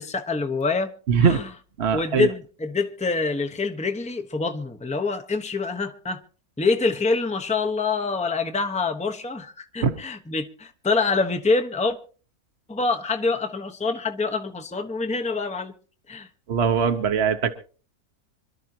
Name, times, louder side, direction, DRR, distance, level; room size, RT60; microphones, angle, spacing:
voice 1, 0.0-0.9 1.2-1.5 1.9-6.2 6.6-12.0 12.7-15.7 16.1-16.3, left 3 dB, 5° left, 0.8 m, -26 dB
voice 2, 1.1-1.4 1.8-2.3 9.8-10.0 16.5-17.5, right 6 dB, 50° right, 1.1 m, -21 dB
26.0 x 12.0 x 2.9 m
omnidirectional pair, 1.6 m